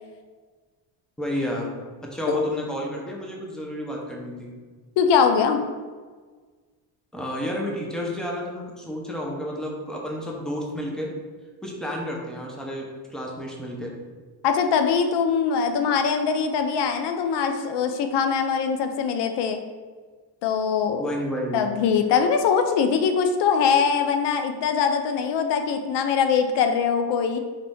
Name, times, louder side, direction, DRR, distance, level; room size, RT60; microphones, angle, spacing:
voice 1, 1.2-1.7 2.0-4.5 7.1-11.1 11.6-13.9 21.0-21.6, left 1 dB, ahead, -1 dB, 0.6 m, -30 dB
voice 2, 5.0-5.6 14.4-19.6 20.4-21.0 21.5-27.4, left 6 dB, 80° left, 6 dB, 0.5 m, -22 dB
4.0 x 2.5 x 3.5 m, 1.4 s
cardioid pair, 120°, 41 cm